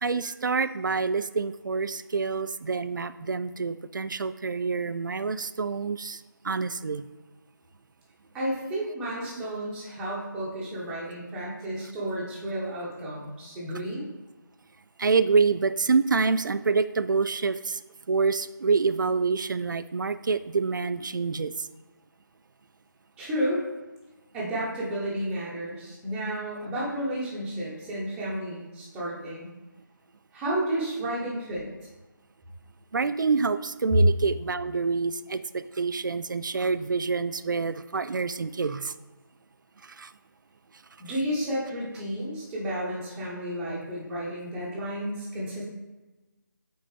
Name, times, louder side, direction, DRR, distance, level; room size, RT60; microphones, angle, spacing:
voice 1, 0.0-7.1 9.4-9.5 15.0-17.8 18.1-21.7 32.9-38.9 39.8-40.1, right 4 dB, 65° right, 13 dB, 0.4 m, -27 dB
voice 2, 8.3-14.0 23.2-23.6 24.3-29.5 30.3-31.7 33.9-34.0 41.0-45.6, right 1 dB, 10° right, -7 dB, 1.1 m, -31 dB
7.7 x 4.3 x 3.4 m, 1.1 s
figure-of-eight pair, 155°, 11 cm